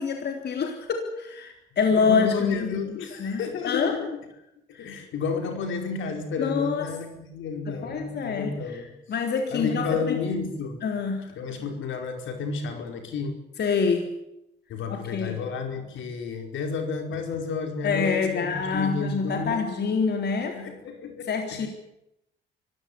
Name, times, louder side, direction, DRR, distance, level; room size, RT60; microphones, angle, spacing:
voice 1, 0.0-4.0 4.7-4.9 6.4-6.9 7.7-8.8 9.1-10.2 10.8-11.3 13.6-14.1 14.9-15.4 17.8-20.6 21.3-21.7, left 5 dB, 55° left, 3 dB, 3.8 m, -26 dB
voice 2, 1.9-4.1 4.8-8.9 9.5-10.8 11.3-13.3 14.7-19.8 20.5-21.7, left 4 dB, 80° left, 5 dB, 4.9 m, -31 dB
25.0 x 15.5 x 9.7 m, 0.84 s
cardioid pair, 90°, 20 cm